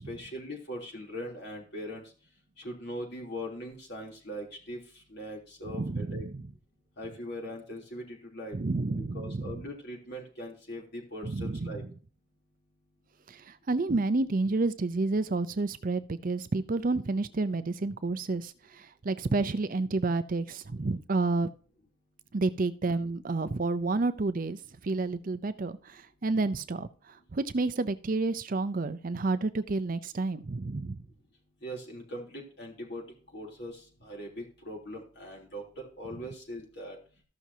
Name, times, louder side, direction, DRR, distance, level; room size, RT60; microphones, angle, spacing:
voice 1, 0.1-2.0 2.6-4.8 5.1-6.2 7.0-8.5 9.0-11.8 31.6-33.0 33.3-33.8 34.0-35.6 36.0-37.0, equal, 50° left, -1 dB, 3.2 m, -40 dB
voice 2, 5.7-6.5 8.5-9.6 11.2-11.9 13.3-21.5 22.3-24.6 24.8-31.0, right 3 dB, 40° right, 12 dB, 0.5 m, -30 dB
14.5 x 6.1 x 2.8 m, 0.39 s
head